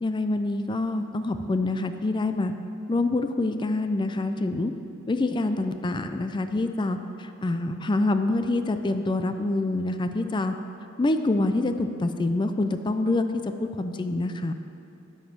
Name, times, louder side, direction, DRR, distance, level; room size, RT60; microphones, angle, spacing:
voice 1, 0.0-2.5 2.9-4.7 5.1-10.5 11.0-14.5, left 2 dB, 25° left, 8 dB, 0.4 m, -26 dB
10.0 x 5.4 x 6.0 m, 2.6 s
head